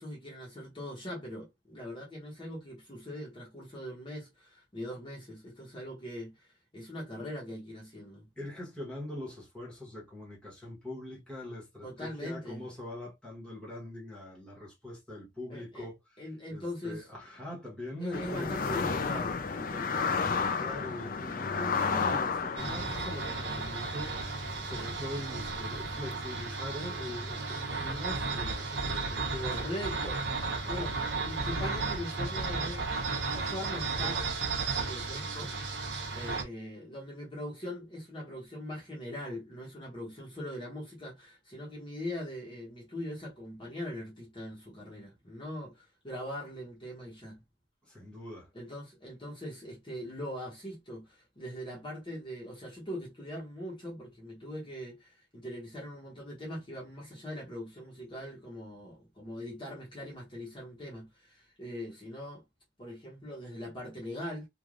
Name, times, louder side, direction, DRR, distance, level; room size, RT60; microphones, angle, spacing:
voice 1, 0.0-8.3 11.8-12.6 15.5-15.9 16.2-17.1 18.0-20.1 29.4-30.2 30.7-32.9 33.2-34.2 34.8-35.5 36.1-47.4 48.5-62.4 62.8-64.5, left 1 dB, 25° left, 1.0 m, -41 dB
voice 2, 8.4-16.2 16.5-18.5 20.6-29.5 30.3-30.9 47.9-48.5, left 1 dB, 5° left, 1.2 m, -42 dB
sound 1, 18.1-26.2, left 5 dB, 45° left, 0.4 m, -33 dB
sound 2, 22.6-36.4, right 3 dB, 65° right, 0.9 m, -34 dB
3.2 x 2.4 x 2.5 m
head